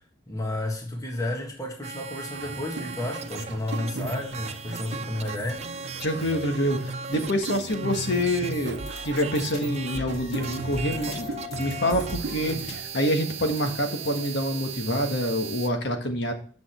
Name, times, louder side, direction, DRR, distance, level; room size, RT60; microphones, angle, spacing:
voice 1, 0.3-5.6, left 1 dB, 20° left, 1.5 m, -32 dB
sound 1, 1.8-15.7, right 6 dB, 35° right, 0.6 m, -38 dB
sound 2, 2.3-12.8, right 3 dB, 65° right, 0.8 m, -37 dB
voice 2, 6.0-11.3 11.6-16.3, equal, 65° left, 1.6 m, -26 dB
sound 3, 8.8-14.6, left 2 dB, 35° left, 2.4 m, -40 dB
8.6 x 6.2 x 4.4 m
head